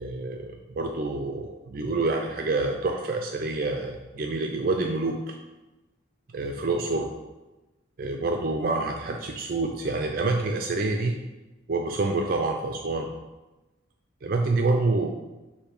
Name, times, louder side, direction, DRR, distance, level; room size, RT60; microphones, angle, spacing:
voice 1, 0.0-5.3 6.3-7.1 8.0-11.1 11.7-13.1 14.2-15.1, right 3 dB, 50° right, 2 dB, 0.4 m, -27 dB
6.7 x 2.7 x 5.6 m, 1.1 s
head